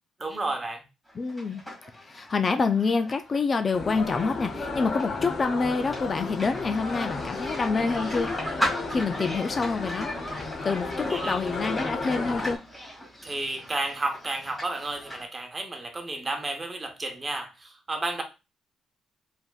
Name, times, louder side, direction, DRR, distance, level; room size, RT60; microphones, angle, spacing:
voice 1, 0.2-0.8 11.1-11.3 13.2-18.2, right 2 dB, 25° right, 4 dB, 1.0 m, -32 dB
sound 1, 1.1-15.2, equal, 10° left, 2.1 m, -38 dB
voice 2, 1.2-1.6 2.0-8.3 8.9-10.1 10.6-12.6, left 4 dB, 35° left, 8 dB, 0.4 m, -27 dB
sound 2, 3.7-12.6, left 3 dB, 55° left, 0.9 m, -33 dB
4.4 x 3.4 x 2.3 m, 0.28 s
cardioid pair, 90°, 0 cm